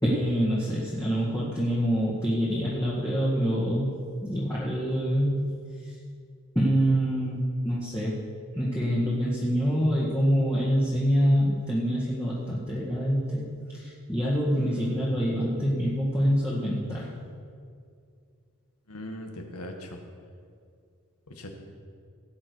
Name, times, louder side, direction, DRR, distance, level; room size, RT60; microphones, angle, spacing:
voice 1, 0.0-5.5 6.6-8.1 8.5-17.1, equal, 15° left, -8 dB, 1.9 m, -26 dB
voice 2, 14.5-15.1 18.9-20.0 21.3-21.5, left 1 dB, 85° left, 3 dB, 1.8 m, -40 dB
17.5 x 8.8 x 4.7 m, 2.3 s
head